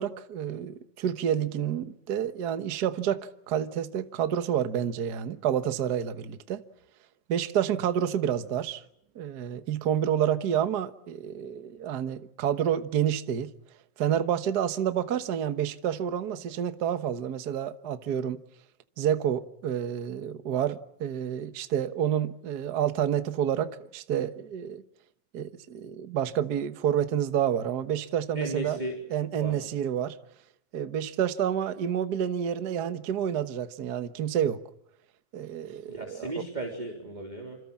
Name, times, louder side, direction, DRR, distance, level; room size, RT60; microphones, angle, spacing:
voice 1, 0.0-6.6 7.3-8.8 9.1-13.5 14.0-18.4 19.0-24.8 25.3-28.8 29.1-30.1 30.7-34.6 35.3-36.3, right 9 dB, 55° right, 1.2 m, -29 dB
voice 2, 28.3-29.0 29.3-29.7 35.8-37.6, right 1 dB, 15° right, 3.6 m, -35 dB
27.5 x 27.0 x 7.3 m
omnidirectional pair, 3.4 m